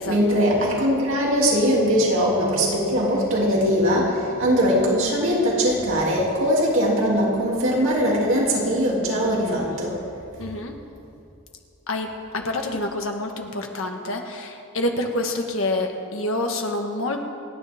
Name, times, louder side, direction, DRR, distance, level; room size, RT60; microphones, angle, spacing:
voice 1, 0.0-9.9, equal, 60° right, -4 dB, 2.9 m, -21 dB
voice 2, 10.4-10.7 11.9-12.1 12.3-17.2, left 2 dB, 65° left, 3 dB, 1.6 m, -27 dB
28.5 x 10.0 x 3.7 m, 2.5 s
head